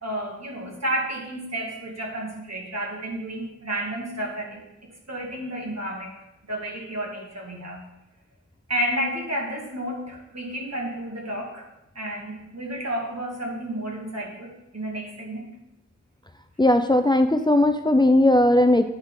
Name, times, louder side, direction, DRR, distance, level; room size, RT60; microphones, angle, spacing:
voice 1, 0.0-6.1 6.5-7.8 8.7-11.7 12.0-15.5, right 1 dB, 60° right, -2 dB, 2.4 m, -31 dB
voice 2, 16.6-18.8, left 1 dB, 15° left, 7 dB, 0.5 m, -18 dB
9.5 x 6.3 x 3.7 m, 0.93 s
wide cardioid pair, 45°, 30 cm